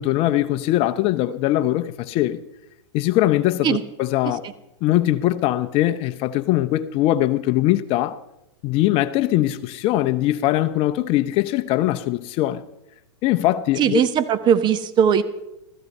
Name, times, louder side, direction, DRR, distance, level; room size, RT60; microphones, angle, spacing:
voice 1, 0.0-2.4 2.9-4.4 4.8-8.2 8.6-12.6 13.2-14.0, left 15 dB, 40° left, 0.8 m, -21 dB
voice 2, 13.8-15.2, right 8 dB, 30° right, 1.1 m, -19 dB
15.5 x 14.5 x 5.5 m
hypercardioid pair, 115°, 14 cm